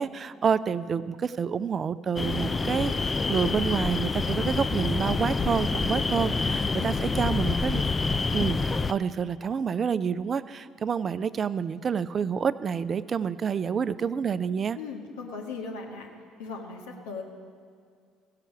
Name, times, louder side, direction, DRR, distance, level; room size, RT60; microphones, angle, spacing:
voice 1, 0.0-2.9 3.3-7.8 8.3-14.8, right 6 dB, 40° right, 15 dB, 0.4 m, -28 dB
sound 1, 2.2-8.9, left 4 dB, 25° left, 0.4 m, -27 dB
voice 2, 6.0-7.1 14.7-16.1 16.4-17.2, left 4 dB, 80° left, 0 dB, 1.6 m, -39 dB
16.0 x 5.8 x 7.1 m, 2.2 s
hypercardioid pair, 60°, 0 cm